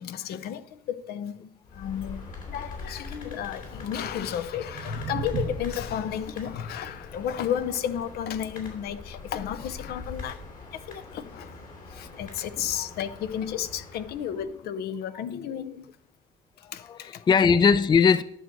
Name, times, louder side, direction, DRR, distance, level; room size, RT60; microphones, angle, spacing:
voice 1, 0.0-16.0 16.6-17.2, left 9 dB, 70° left, 0.7 m, -33 dB
sound 1, 1.6-14.6, left 3 dB, 50° left, 2.9 m, -42 dB
sound 2, 4.2-10.3, right 6 dB, 85° right, 1.0 m, -40 dB
voice 2, 16.6-18.2, left 6 dB, 25° left, 0.4 m, -21 dB
11.0 x 6.4 x 4.5 m
cardioid pair, 110°, 17 cm